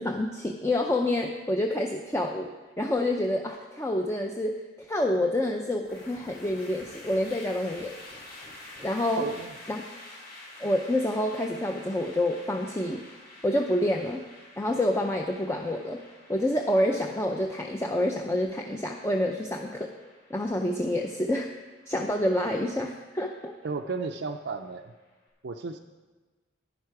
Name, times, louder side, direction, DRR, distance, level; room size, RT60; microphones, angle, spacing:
voice 1, 0.0-2.5 2.8-7.9 8.8-9.2 9.7-9.8 10.6-13.0 13.4-14.2 14.6-16.0 16.3-19.9 20.3-21.5 21.9-23.5, left 1 dB, 15° left, 2 dB, 0.5 m, -28 dB
sound 1, 5.8-25.1, left 1 dB, 50° left, 3.7 m, -49 dB
voice 2, 9.1-9.5 23.6-24.9 25.4-25.8, right 4 dB, 60° right, 3 dB, 0.5 m, -33 dB
11.0 x 10.5 x 4.7 m, 1.3 s
head